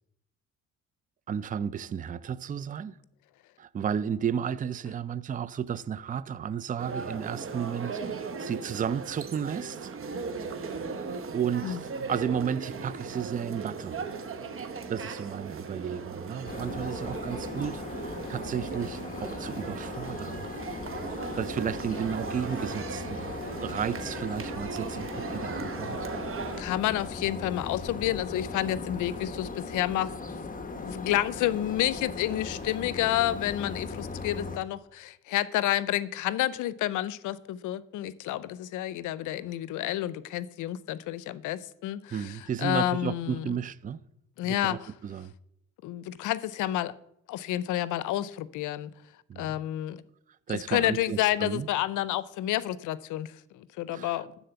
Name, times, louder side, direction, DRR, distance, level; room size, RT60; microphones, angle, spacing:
voice 1, 1.3-3.0 3.6-9.9 11.3-14.0 14.9-20.5 21.4-26.1 42.1-44.0 44.4-45.3 49.3-49.6 50.5-51.7 53.9-54.2, right 8 dB, 25° right, 0.4 m, -33 dB
sound 1, 6.8-26.6, right 5 dB, 45° right, 1.1 m, -38 dB
sound 2, 16.4-34.6, left 4 dB, 25° left, 1.1 m, -38 dB
voice 2, 26.6-30.1 30.8-43.5 44.4-44.9 45.8-46.9 47.3-48.9 49.4-50.0 50.5-54.3, left 13 dB, 85° left, 0.5 m, -30 dB
12.5 x 4.2 x 7.8 m
cardioid pair, 90°, 30 cm